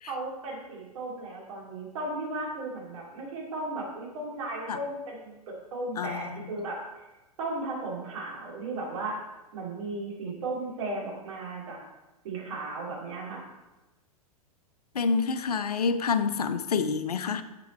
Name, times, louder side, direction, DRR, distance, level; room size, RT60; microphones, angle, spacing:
voice 1, 0.1-7.1 7.4-9.2 9.5-11.8 12.2-13.4, right 2 dB, 55° right, -3 dB, 2.8 m, -35 dB
voice 2, 6.0-6.6 14.9-17.4, left 5 dB, 75° left, 11 dB, 0.6 m, -28 dB
7.0 x 7.0 x 4.3 m, 1.0 s
figure-of-eight pair, 100°, 20 cm